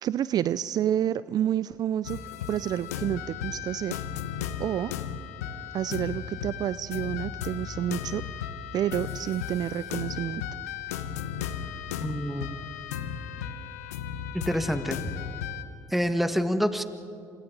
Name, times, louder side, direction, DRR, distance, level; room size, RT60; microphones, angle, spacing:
voice 1, 0.0-2.2 2.5-4.0 4.6-4.9 5.7-8.2 8.7-10.4, right 11 dB, 55° right, 17 dB, 0.4 m, -29 dB
sound 1, 2.0-15.6, left 8 dB, 90° left, 0.9 m, -35 dB
voice 2, 12.0-12.6 14.3-15.0 15.9-16.8, equal, ahead, 8 dB, 1.8 m, -27 dB
29.5 x 26.5 x 4.0 m, 2.6 s
hypercardioid pair, 55°, 8 cm